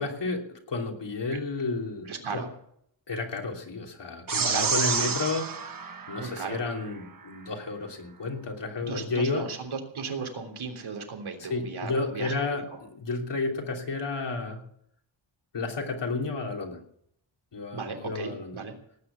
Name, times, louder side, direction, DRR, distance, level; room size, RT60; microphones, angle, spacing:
voice 1, 0.0-2.4 3.1-5.5 6.1-9.5 11.5-14.6 15.5-16.8 17.5-18.6, left 3 dB, 60° left, 2 dB, 3.2 m, -31 dB
voice 2, 2.0-2.5 4.3-5.1 6.2-6.6 8.8-12.8 17.7-18.8, right 5 dB, 90° right, 3 dB, 3.4 m, -36 dB
sound 1, 4.3-6.9, right 5 dB, 45° right, 1.3 m, -29 dB
18.5 x 9.6 x 6.9 m, 0.70 s
wide cardioid pair, 145°, 47 cm